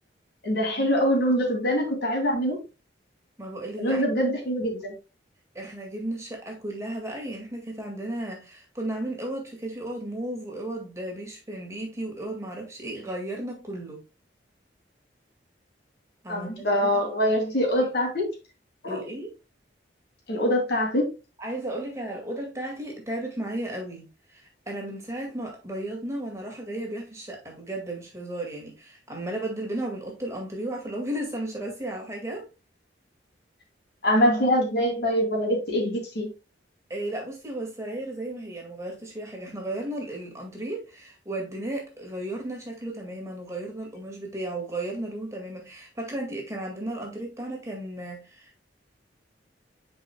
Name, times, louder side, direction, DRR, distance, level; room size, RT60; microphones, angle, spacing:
voice 1, 0.4-2.6 3.8-4.9 16.3-18.3 18.8-19.0 20.3-21.1 34.0-36.3, equal, 60° left, 2.7 m, -24 dB
voice 2, 3.4-4.0 5.5-14.0 16.2-17.4 18.9-19.3 21.4-32.5 36.9-48.6, right 1 dB, 15° right, 1.9 m, -34 dB
9.8 x 4.9 x 2.2 m
head